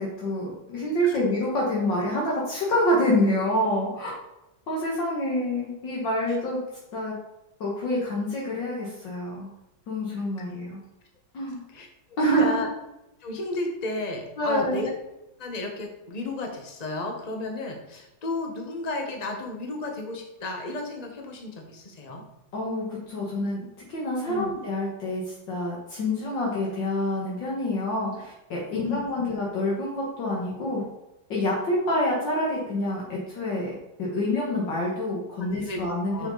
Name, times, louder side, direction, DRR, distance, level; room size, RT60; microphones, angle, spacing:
voice 1, 0.0-4.1 4.7-6.6 6.9-7.1 7.6-9.5 9.9-10.8 11.3-11.6 12.2-12.6 14.4-14.9 22.5-23.6 23.9-30.9 31.3-33.7 34.0-36.3, left 1 dB, 65° left, -4 dB, 2.1 m, -27 dB
voice 2, 11.7-12.7 13.2-14.9 15.4-22.2 24.2-24.5 28.7-29.0 35.4-36.3, left 2 dB, 25° left, 2 dB, 1.0 m, -33 dB
6.6 x 6.2 x 3.9 m, 0.92 s
omnidirectional pair, 2.2 m